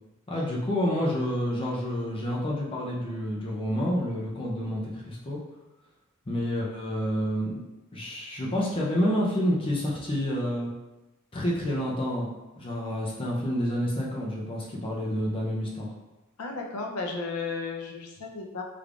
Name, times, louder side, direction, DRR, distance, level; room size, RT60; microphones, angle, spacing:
voice 1, 0.3-5.4 6.3-7.6 7.9-10.7 11.3-12.3 12.6-15.9, equal, 25° left, -4 dB, 0.5 m, -29 dB
voice 2, 16.4-18.6, left 4 dB, 90° left, 1 dB, 0.6 m, -34 dB
3.5 x 3.4 x 2.4 m, 1.0 s
head